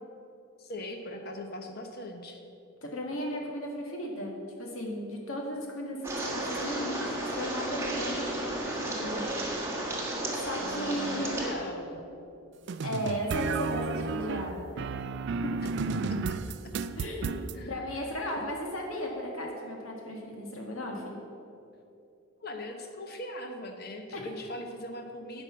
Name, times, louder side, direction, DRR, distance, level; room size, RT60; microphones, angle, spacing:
voice 1, 0.6-2.4 10.6-12.1 15.6-15.7 16.1-16.7 17.5-18.5 22.4-25.4, left 1 dB, 45° left, 4 dB, 1.0 m, -41 dB
voice 2, 2.8-4.3 4.6-9.3 10.3-11.4 12.8-14.9 15.4-15.5 17.0-17.3 17.7-21.2 24.1-24.2, equal, 70° left, 0 dB, 1.9 m, -35 dB
sound 1, 6.0-11.5, right 1 dB, 10° right, 1.3 m, -33 dB
sound 2, 12.7-17.6, right 4 dB, 50° right, 0.3 m, -32 dB
10.5 x 5.4 x 7.2 m, 2.7 s
head